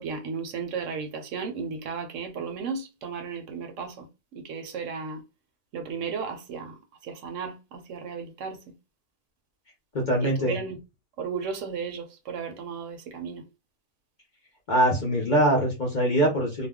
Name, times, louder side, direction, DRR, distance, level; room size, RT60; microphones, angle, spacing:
voice 1, 0.0-5.2 5.7-8.7 10.2-10.8 11.2-13.5, right 5 dB, 70° right, 0.9 m, -35 dB
voice 2, 9.9-10.6 14.7-16.7, right 1 dB, 45° left, 0.6 m, -23 dB
2.3 x 2.1 x 3.5 m
omnidirectional pair, 1.4 m